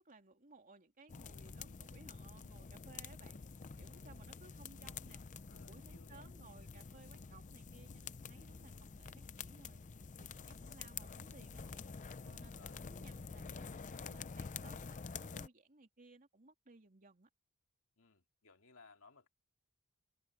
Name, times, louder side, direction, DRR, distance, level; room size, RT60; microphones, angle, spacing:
voice 1, 0.0-3.4 3.8-5.2 5.5-9.8 10.1-11.8 12.2-17.3, right 3 dB, 40° right, 3.0 m, -61 dB
sound 1, 1.1-15.5, left 5 dB, 35° left, 0.5 m, -48 dB
sound 2, 4.6-12.5, equal, 5° right, 5.2 m, -74 dB
voice 2, 5.5-6.4 12.5-12.8 18.0-19.3, left 4 dB, 65° left, 2.5 m, -63 dB
head